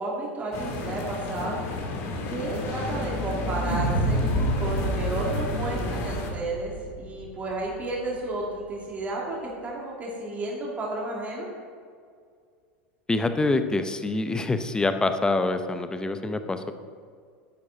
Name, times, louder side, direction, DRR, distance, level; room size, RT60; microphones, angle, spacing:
voice 1, 0.0-1.6 2.3-4.3 4.6-11.5, right 2 dB, 25° right, -3 dB, 2.3 m, -32 dB
sound 1, 0.5-6.3, left 2 dB, 50° left, 2.0 m, -30 dB
sound 2, 3.7-8.0, right 3 dB, 80° right, 1.3 m, -31 dB
voice 2, 13.1-16.7, left 2 dB, 10° left, 9 dB, 0.7 m, -25 dB
9.7 x 8.3 x 3.8 m, 2.1 s
hypercardioid pair, 95°, 6 cm